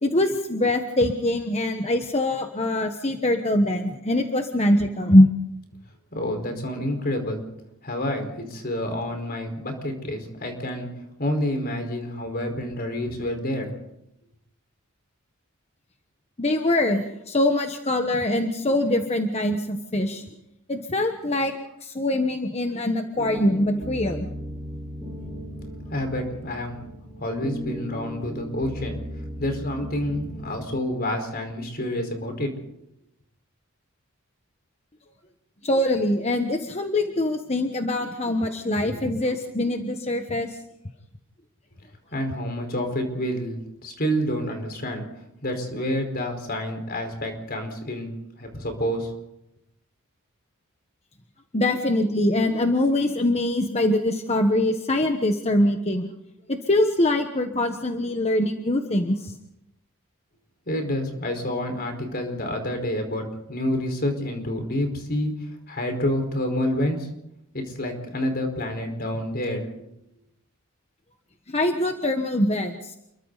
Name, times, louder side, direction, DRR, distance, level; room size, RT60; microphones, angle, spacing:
voice 1, 0.0-5.3 16.4-20.2 20.7-21.5 21.8-24.3 35.6-40.6 51.5-56.1 56.5-59.3 71.5-73.0, left 1 dB, 30° left, 5 dB, 1.3 m, -23 dB
voice 2, 6.1-7.4 7.8-10.9 11.2-13.7 25.9-26.8 27.2-29.0 29.4-32.5 42.1-45.0 45.4-48.1 48.4-49.1 60.6-67.1 67.5-69.7, left 1 dB, 45° left, 4 dB, 4.8 m, -28 dB
sound 1, 23.2-30.4, equal, 10° right, 4.1 m, -36 dB
29.5 x 22.5 x 4.1 m, 0.82 s
head